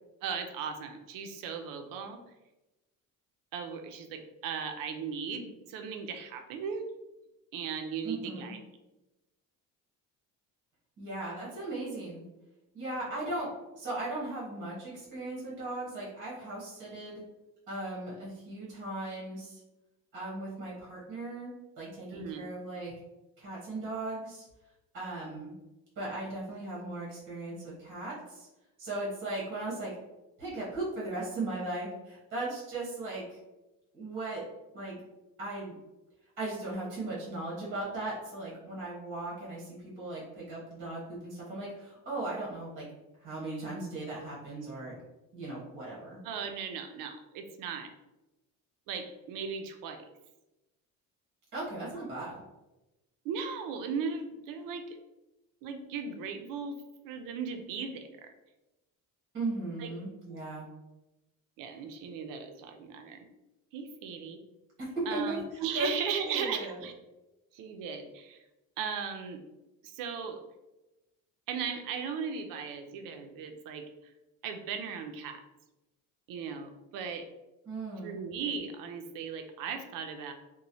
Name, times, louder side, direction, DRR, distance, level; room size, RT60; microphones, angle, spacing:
voice 1, 0.2-2.2 3.5-6.8 7.5-8.6 22.1-22.5 46.2-47.9 48.9-50.0 53.2-55.0 55.6-56.8 57.0-58.3 59.8-59.9 61.6-63.3 63.7-64.4 65.1-66.9 67.5-68.4 68.8-69.4 69.8-70.4 71.5-73.9 74.4-75.4 76.3-77.3 78.0-80.3, right 6 dB, 70° right, 6 dB, 0.5 m, -37 dB
voice 2, 8.0-8.6 11.0-12.2 12.7-13.5 13.7-17.2 17.7-19.6 20.1-22.9 23.4-24.4 24.9-25.5 26.0-28.5 28.8-29.9 30.4-33.4 33.9-34.4 34.7-35.0 35.4-35.7 36.4-42.8 43.2-45.0 45.3-46.2 51.5-52.3 59.3-60.7 64.8-65.4 65.7-65.9 66.2-66.9 77.7-78.2, right 2 dB, 35° right, -6 dB, 1.1 m, -37 dB
3.0 x 2.1 x 2.6 m, 1.0 s
cardioid pair, 155°, 34 cm